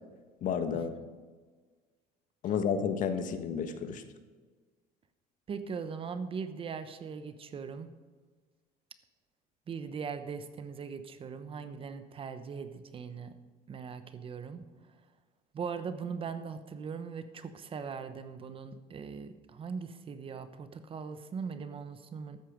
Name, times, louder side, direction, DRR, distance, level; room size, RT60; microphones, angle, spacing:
voice 1, 0.4-0.9 2.4-4.0, left 7 dB, 50° left, 9 dB, 1.3 m, -31 dB
voice 2, 5.5-7.9 9.7-13.3 13.7-14.7 15.5-22.4, right 6 dB, 30° right, 11 dB, 1.0 m, -40 dB
13.0 x 9.2 x 5.1 m, 1.4 s
cardioid pair, 125°, 17 cm